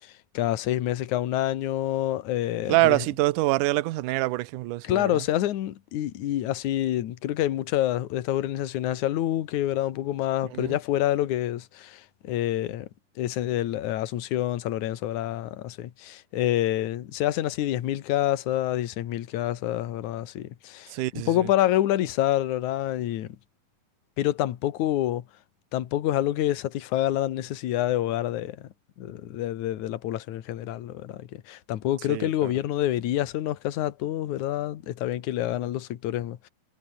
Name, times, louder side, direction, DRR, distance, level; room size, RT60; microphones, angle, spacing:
voice 1, 0.0-3.0 4.8-12.9 13.2-23.4 24.2-25.2 25.7-28.7 29.0-36.5, left 13 dB, 60° left, 2.5 m, -27 dB
voice 2, 2.7-5.2 10.5-10.8 20.9-21.5 32.1-32.5, right 18 dB, 70° right, 2.1 m, -25 dB
omnidirectional pair, 4.2 m